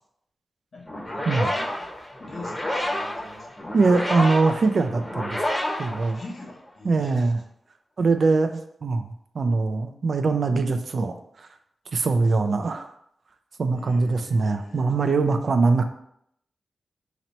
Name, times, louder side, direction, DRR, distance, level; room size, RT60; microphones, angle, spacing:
voice 1, 0.7-1.9 2.2-3.7 6.0-7.3 13.7-14.9, left 2 dB, 65° left, -1 dB, 1.0 m, -43 dB
sound 1, 0.9-6.7, left 1 dB, 15° left, 0.8 m, -29 dB
voice 2, 3.7-5.4 5.8-6.2 6.8-7.4 8.0-9.1 9.3-11.5 11.9-12.9 13.6-15.9, right 3 dB, 65° right, 8 dB, 0.4 m, -22 dB
3.0 x 2.9 x 4.2 m, 0.73 s
cardioid pair, 60°, 0 cm